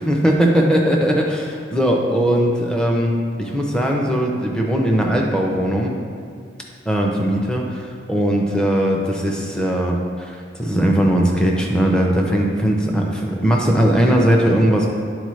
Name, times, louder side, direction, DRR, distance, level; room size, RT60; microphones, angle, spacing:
voice 1, 0.1-5.9 6.9-10.3 10.6-14.9, equal, 5° left, -1 dB, 0.5 m, -19 dB
9.5 x 4.1 x 3.1 m, 2.2 s
head